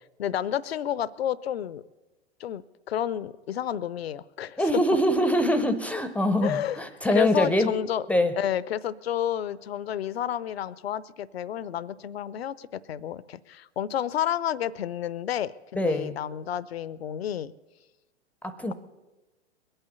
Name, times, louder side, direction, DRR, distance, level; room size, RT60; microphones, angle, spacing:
voice 1, 0.2-1.8 2.4-4.6 6.4-6.8 7.1-8.0 8.4-17.5, left 10 dB, 65° left, 19 dB, 0.6 m, -30 dB
voice 2, 4.6-7.7 8.1-8.3 15.7-16.1 18.4-18.7, left 1 dB, 5° left, 11 dB, 0.5 m, -24 dB
21.5 x 9.0 x 6.9 m, 1.1 s
figure-of-eight pair, 105°, 34 cm